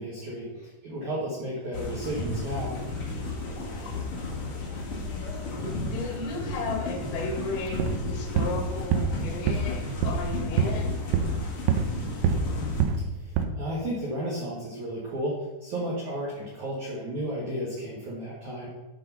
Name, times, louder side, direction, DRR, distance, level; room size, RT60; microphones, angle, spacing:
voice 1, 0.0-2.7 13.6-18.7, right 1 dB, 70° right, -5 dB, 1.8 m, -33 dB
sound 1, 1.7-12.8, left 2 dB, 60° left, 1.3 m, -33 dB
voice 2, 5.8-7.8 8.1-10.9, left 3 dB, 90° left, 1 dB, 4.5 m, -34 dB
sound 2, 7.7-8.0 8.4-8.6 8.9-9.2 9.5-9.7 10.0-10.3 10.6-10.8 11.1-12.0 12.2-12.5 12.8-13.1 13.4-13.5, right 7 dB, 85° right, 3.4 m, -25 dB
12.0 x 4.8 x 5.5 m, 1.1 s
omnidirectional pair, 5.7 m